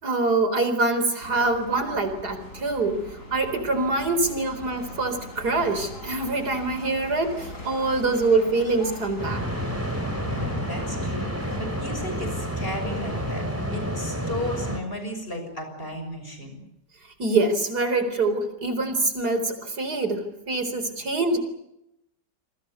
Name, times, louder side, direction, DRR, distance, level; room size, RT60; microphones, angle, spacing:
voice 1, 0.0-3.0 3.3-9.4 17.2-21.4, right 3 dB, 65° right, 9 dB, 4.7 m, -24 dB
sound 1, 1.2-13.4, left 1 dB, 50° left, 5.8 m, -41 dB
sound 2, 9.2-14.8, equal, 10° right, 3.7 m, -29 dB
voice 2, 10.2-16.6, left 1 dB, 30° left, 6 dB, 6.7 m, -34 dB
28.0 x 24.0 x 7.0 m, 0.83 s
omnidirectional pair, 1.8 m